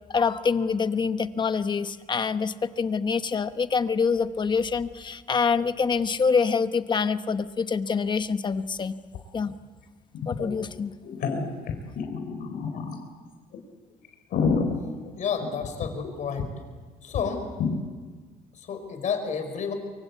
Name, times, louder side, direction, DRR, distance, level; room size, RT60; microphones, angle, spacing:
voice 1, 0.1-9.0 9.3-9.5 10.3-10.9, left 5 dB, 30° left, 11 dB, 1.0 m, -25 dB
sound 1, 9.1-9.2 9.5-9.6 10.1-10.6 11.0-13.0 13.5-13.6 14.0-16.1 16.4-16.5 16.7-16.8 17.1-17.2 17.6-17.7, left 5 dB, 70° left, 3.9 m, -28 dB
voice 2, 15.2-16.5 17.0-17.5 18.5-19.7, left 6 dB, 55° left, 6 dB, 5.1 m, -30 dB
24.0 x 24.0 x 8.3 m, 1.4 s
cardioid pair, 125°, 16 cm